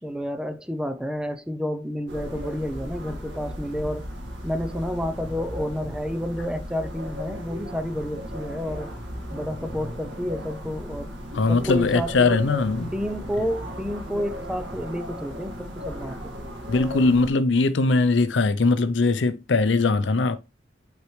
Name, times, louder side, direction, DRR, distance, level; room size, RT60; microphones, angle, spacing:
voice 1, 0.0-4.1 4.4-8.9 9.3-11.2 11.5-12.4 12.9-16.3, equal, 5° right, 0.6 m, -30 dB
sound 1, 2.1-17.3, equal, 75° right, 1.8 m, -36 dB
voice 2, 11.3-12.9 16.7-20.4, left 3 dB, 70° left, 0.6 m, -21 dB
8.3 x 4.5 x 3.2 m
head